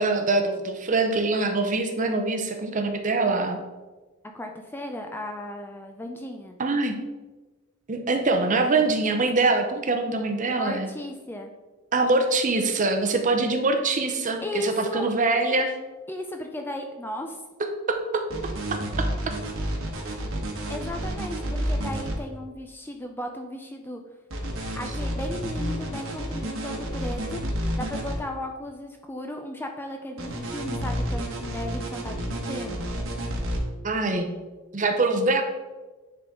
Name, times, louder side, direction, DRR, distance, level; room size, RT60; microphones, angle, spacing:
voice 1, 0.0-3.6 6.6-7.0 7.9-10.9 11.9-15.7 17.9-18.2 33.8-34.3 34.7-35.4, right 3 dB, 35° right, 5 dB, 0.7 m, -24 dB
voice 2, 4.3-6.6 10.5-11.5 14.4-15.1 16.1-17.4 20.0-20.2 20.7-24.0 24.8-27.4 27.8-32.8, left 1 dB, 10° left, 4 dB, 0.4 m, -35 dB
sound 1, 18.3-22.2 24.3-28.2 30.2-33.6, equal, 65° right, 1.2 m, -30 dB
9.5 x 3.9 x 3.6 m, 1.2 s
head